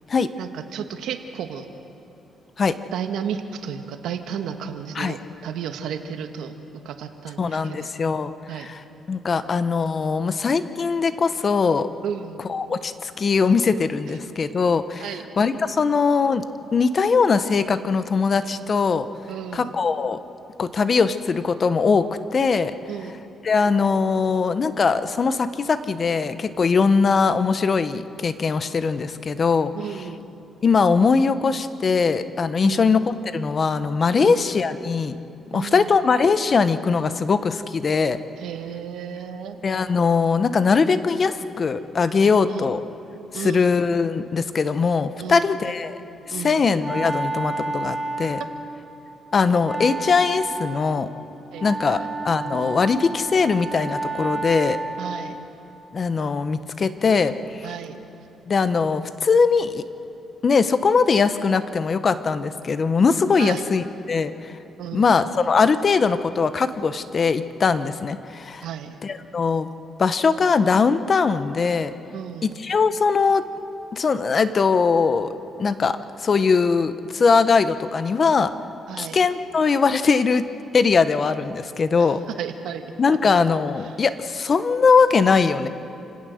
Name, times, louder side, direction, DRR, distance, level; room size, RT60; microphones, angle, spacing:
voice 1, 0.4-1.7 2.9-7.9 8.5-8.7 12.0-12.4 15.0-15.2 19.3-19.8 22.8-23.1 29.7-30.2 32.6-32.9 34.2-34.4 35.5-35.9 38.4-39.6 42.5-42.7 43.3-43.7 45.2-45.8 46.3-46.6 48.4-48.5 51.5-52.1 55.0-55.4 57.6-58.0 63.4-63.7 64.8-65.2 68.6-69.0 72.1-72.6 78.9-79.2 82.0-82.9 83.2-83.3, right 8 dB, 85° right, 7 dB, 1.5 m, -33 dB
voice 2, 7.4-8.3 8.6-8.8 9.1-11.9 12.5-15.1 15.4-16.4 16.7-19.1 19.5-20.2 20.6-22.1 22.3-22.7 23.4-29.7 30.6-35.1 35.5-38.2 39.6-42.8 43.3-46.0 46.3-48.4 49.3-51.1 51.6-54.8 55.9-57.3 57.6-57.7 58.5-59.8 60.4-64.5 64.9-68.6 69.0-69.7 70.0-71.9 72.4-73.4 73.9-75.3 75.6-78.5 79.0-80.4 80.7-82.2 83.0-85.7, left 5 dB, 40° left, 12 dB, 0.9 m, -21 dB
Wind instrument woodwind instrument, 46.3-55.4, right 3 dB, 15° right, 2.4 m, -31 dB
28.5 x 17.0 x 6.5 m, 2.7 s
cardioid pair, 90°, 0 cm